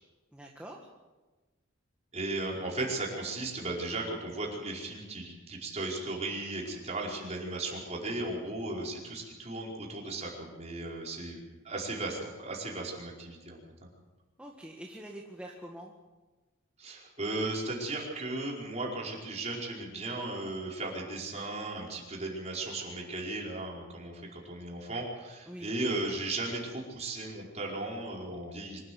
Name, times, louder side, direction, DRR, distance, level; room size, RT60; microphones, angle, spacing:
voice 1, 0.3-0.8 14.4-15.9 25.5-25.7, right 1 dB, 5° right, -2 dB, 1.8 m, -45 dB
voice 2, 2.1-13.6 16.8-28.8, right 2 dB, 35° right, -2 dB, 5.0 m, -36 dB
25.0 x 13.0 x 8.0 m, 1.2 s
head